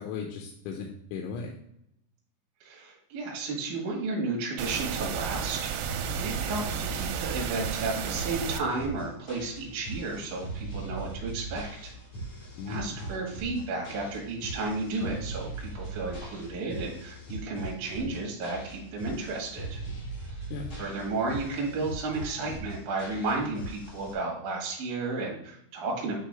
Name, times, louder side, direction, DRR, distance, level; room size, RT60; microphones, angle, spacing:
voice 1, 0.0-1.6 12.6-12.9 20.5-20.7, left 6 dB, 80° left, 1 dB, 3.0 m, -37 dB
voice 2, 2.6-5.9 6.2-11.9 12.7-19.8 20.7-26.2, right 3 dB, 55° right, -2 dB, 2.4 m, -33 dB
sound 1, 4.6-8.6, right 8 dB, 85° right, 2.9 m, -33 dB
sound 2, 5.8-24.1, right 2 dB, 55° left, 1.5 m, -40 dB
8.9 x 3.6 x 3.4 m, 0.77 s
omnidirectional pair, 5.6 m